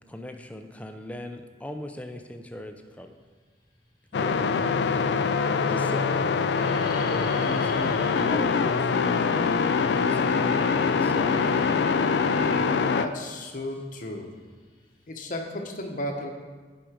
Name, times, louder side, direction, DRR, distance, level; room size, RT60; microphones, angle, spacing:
voice 1, 0.1-3.2 4.1-4.5 4.8-5.2 5.7-6.4 7.0-9.5 9.9-10.6 10.9-11.6, left 1 dB, 10° left, 5 dB, 0.5 m, -39 dB
sound 1, 3.9-4.4 5.1-5.2 5.5-5.9 6.1-15.1, left 1 dB, 25° left, 1.1 m, -43 dB
sound 2, 4.1-13.1, left 5 dB, 65° left, 0.3 m, -24 dB
voice 2, 12.8-14.3 15.1-16.3, left 1 dB, 45° left, 3 dB, 0.9 m, -34 dB
7.5 x 5.2 x 5.0 m, 1.5 s
head